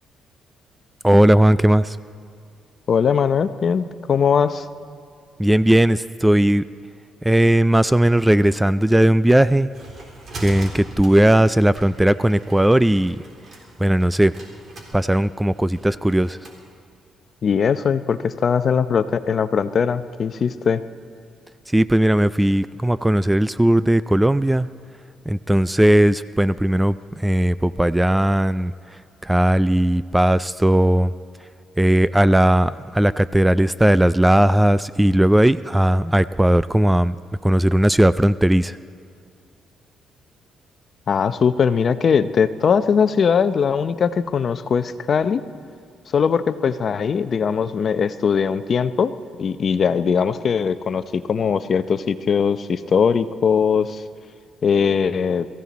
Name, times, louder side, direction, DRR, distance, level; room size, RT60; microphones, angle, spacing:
voice 1, 1.0-2.0 5.4-6.6 7.2-9.7 10.4-13.2 13.8-14.3 14.9-16.4 21.7-24.7 25.3-27.0 27.2-28.7 29.2-31.1 31.8-37.2 37.4-38.8, right 1 dB, 10° right, 16 dB, 0.3 m, -17 dB
voice 2, 2.9-4.6 17.4-20.8 41.1-45.4 46.1-49.1 49.4-54.0 54.6-55.5, left 6 dB, 50° left, 12 dB, 0.6 m, -20 dB
sound 1, 9.5-16.6, right 2 dB, 50° right, 3.9 m, -41 dB
23.0 x 15.0 x 4.2 m, 2.3 s
cardioid pair, 90°, 0 cm